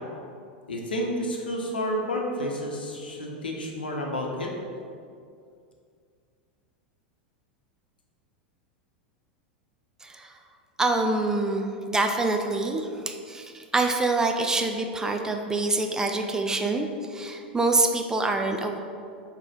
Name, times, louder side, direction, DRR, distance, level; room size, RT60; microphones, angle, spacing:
voice 1, 0.7-4.5, equal, 75° left, 0 dB, 0.9 m, -30 dB
voice 2, 10.0-10.3 10.8-18.8, right 2 dB, 10° right, 3 dB, 0.4 m, -26 dB
4.9 x 3.7 x 5.2 m, 2.3 s
figure-of-eight pair, 85°, 5 cm